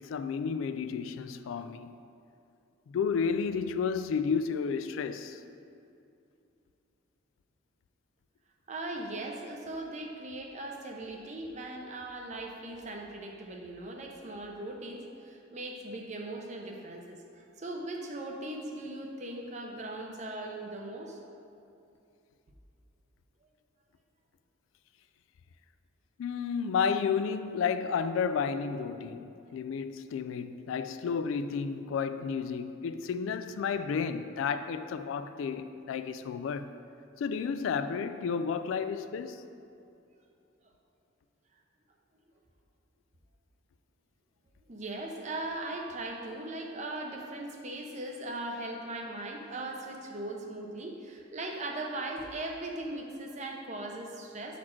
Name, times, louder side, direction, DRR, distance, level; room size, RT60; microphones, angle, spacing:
voice 1, 0.0-1.9 2.9-5.4 26.2-36.7 37.2-39.4, left 6 dB, 75° left, 0.3 m, -32 dB
voice 2, 8.7-21.2 44.7-54.6, right 2 dB, 35° right, 0.7 m, -39 dB
7.4 x 4.2 x 4.4 m
head